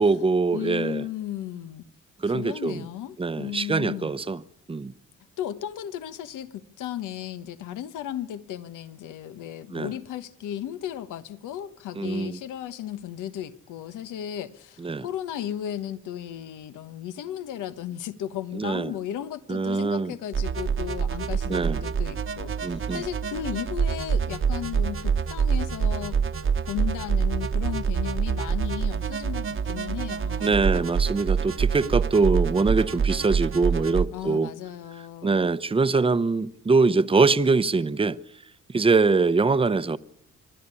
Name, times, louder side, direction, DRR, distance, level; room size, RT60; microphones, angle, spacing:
voice 1, 0.0-1.0 2.2-2.8 3.2-4.4 4.7-4.9 9.7-9.9 12.0-12.4 14.8-15.0 18.5-18.9 19.5-20.1 21.5-21.8 22.6-23.0 30.4-34.5 35.2-38.2 38.7-40.0, right 4 dB, 20° right, 0.8 m, -23 dB
voice 2, 0.5-1.8 2.3-4.1 5.4-26.2 26.7-30.6 34.1-35.5, left 11 dB, 85° left, 1.2 m, -35 dB
sound 1, 20.3-34.0, right 6 dB, 45° right, 1.2 m, -26 dB
25.0 x 13.0 x 9.8 m
cardioid pair, 90°, 30 cm